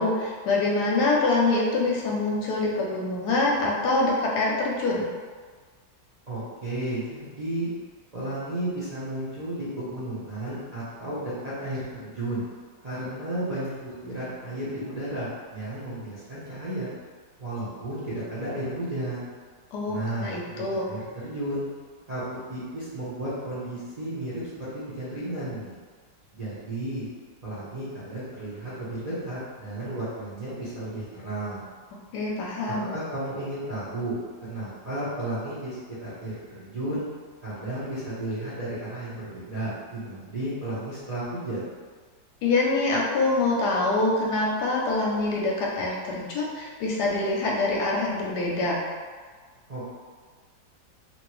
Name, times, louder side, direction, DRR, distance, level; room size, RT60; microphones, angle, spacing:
voice 1, 0.0-5.1 19.7-20.8 32.1-32.9 42.4-48.8, left 2 dB, 75° left, -3 dB, 1.0 m, -25 dB
voice 2, 6.3-7.7 8.1-12.4 12.8-16.9 17.4-19.3 19.9-21.6 22.1-25.8 26.3-27.1 27.4-31.6 32.7-37.0 37.4-41.7 49.7-49.9, right 1 dB, 80° right, -12 dB, 0.3 m, -33 dB
2.9 x 2.6 x 2.9 m, 1.5 s
omnidirectional pair, 2.0 m